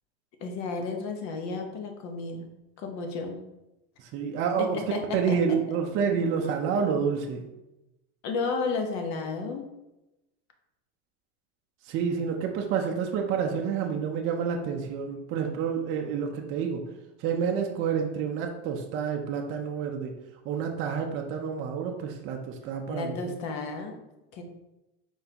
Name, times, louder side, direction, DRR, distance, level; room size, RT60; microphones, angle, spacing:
voice 1, 0.4-2.4 2.8-3.4 4.6-5.4 6.4-6.5 8.2-9.6 22.9-23.9 24.3-24.4, left 4 dB, 50° left, 4 dB, 0.9 m, -32 dB
voice 2, 4.0-4.8 5.1-7.4 11.8-16.9 17.2-20.1 20.4-23.2, right 6 dB, 35° right, 2 dB, 0.5 m, -29 dB
4.5 x 3.9 x 2.8 m, 0.96 s
supercardioid pair, 140°, 35 cm